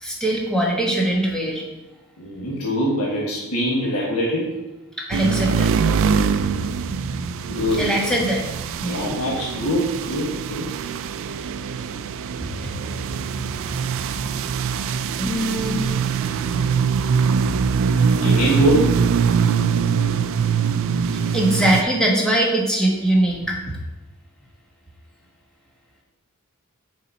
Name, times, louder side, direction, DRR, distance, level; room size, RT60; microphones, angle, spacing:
voice 1, 0.0-1.7 5.0-5.7 7.8-8.4 8.8-9.0 12.6-12.7 15.2-15.8 21.3-23.8, right 1 dB, 5° left, -2 dB, 1.2 m, -21 dB
voice 2, 2.2-4.5 7.5-8.0 8.8-10.7 18.2-19.0, equal, 85° left, -5 dB, 1.4 m, -23 dB
sound 1, 5.1-21.8, right 6 dB, 60° right, 0.3 m, -23 dB
6.5 x 4.3 x 4.0 m, 1.0 s
head